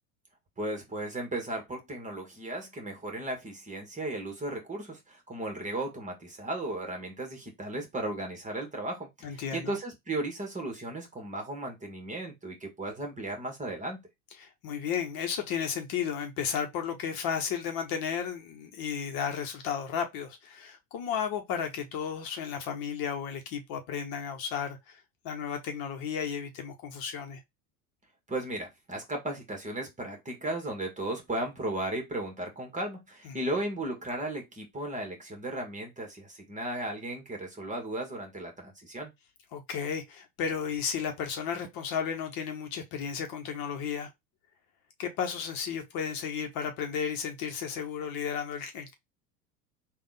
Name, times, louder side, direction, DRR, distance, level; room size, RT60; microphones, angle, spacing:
voice 1, 0.6-14.0 28.3-39.1, right 1 dB, 15° right, 1.6 m, -35 dB
voice 2, 9.2-9.8 14.4-27.4 33.2-33.4 39.5-44.1 45.0-48.9, left 7 dB, 45° left, 1.1 m, -33 dB
3.5 x 2.6 x 3.9 m
hypercardioid pair, 95°, 47 cm